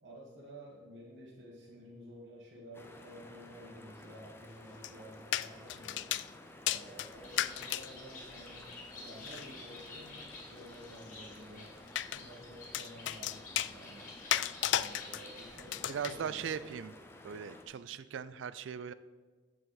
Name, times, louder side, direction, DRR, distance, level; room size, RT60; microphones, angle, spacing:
voice 1, 0.0-6.2 6.6-11.8 12.1-14.1 14.7-16.6, equal, 65° right, -6 dB, 1.6 m, -52 dB
sound 1, 2.7-17.7, left 1 dB, 15° left, 0.7 m, -53 dB
sound 2, 4.8-4.9 5.3-6.3 6.7-7.9 9.3-9.5 11.9-12.2 12.7-13.7 14.3-15.2 15.6-16.1, left 12 dB, 70° left, 0.3 m, -33 dB
Bird, 7.0-16.7, left 3 dB, 45° left, 1.9 m, -51 dB
voice 2, 15.9-16.9 17.2-18.9, right 7 dB, 85° right, 15 dB, 0.3 m, -39 dB
14.0 x 4.8 x 3.9 m, 1.4 s
head